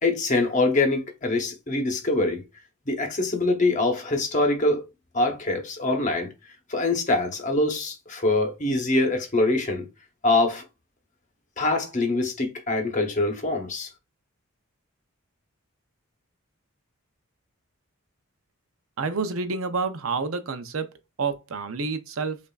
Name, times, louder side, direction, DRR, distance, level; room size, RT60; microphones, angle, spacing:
voice 1, 0.0-2.4 2.9-4.8 5.1-6.3 6.7-9.9 10.2-10.6 11.6-13.9, left 2 dB, 35° left, 0.8 m, -24 dB
voice 2, 19.0-20.9 21.2-22.4, right 4 dB, 75° right, 0.6 m, -28 dB
5.3 x 2.5 x 2.3 m
head